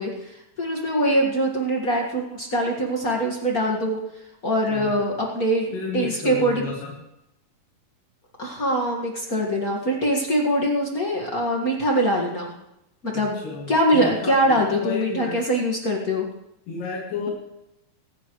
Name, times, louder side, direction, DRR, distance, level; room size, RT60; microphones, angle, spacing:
voice 1, 0.0-4.0 4.4-6.7 8.4-12.5 13.0-16.3, equal, 40° left, -1 dB, 1.2 m, -23 dB
voice 2, 5.7-6.9 13.4-15.4 16.7-17.3, left 4 dB, 60° left, -3 dB, 3.7 m, -31 dB
24.0 x 10.5 x 3.2 m, 0.87 s
omnidirectional pair, 4.6 m